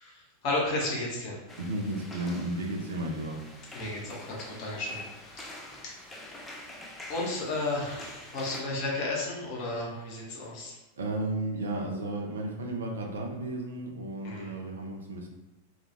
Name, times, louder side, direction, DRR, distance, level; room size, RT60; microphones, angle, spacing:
voice 1, 0.0-1.4 3.7-6.0 7.1-10.8 14.2-14.5, left 2 dB, 45° left, -3 dB, 0.9 m, -33 dB
sound 1, 1.5-8.6, left 1 dB, 10° left, 0.4 m, -46 dB
voice 2, 1.6-3.4 11.0-15.3, right 2 dB, 65° right, 1 dB, 0.5 m, -33 dB
2.4 x 2.3 x 3.0 m, 1.0 s
figure-of-eight pair, 90°, 0 cm